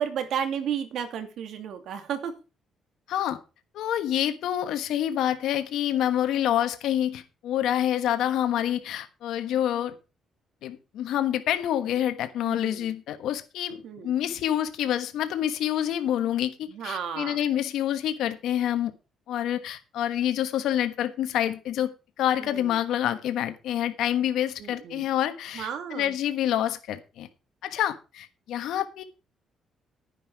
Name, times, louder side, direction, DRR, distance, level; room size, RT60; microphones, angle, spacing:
voice 1, 0.0-2.3 12.4-12.9 13.8-14.2 16.7-17.4 22.4-22.8 24.6-25.1 25.5-26.1, right 8 dB, 75° right, 7 dB, 2.6 m, -33 dB
voice 2, 3.1-3.4 3.7-9.9 10.6-18.9 19.3-25.7 25.9-27.3 27.6-29.0, left 11 dB, 85° left, 9 dB, 1.3 m, -27 dB
11.0 x 9.9 x 4.7 m, 0.30 s
cardioid pair, 90°, 0 cm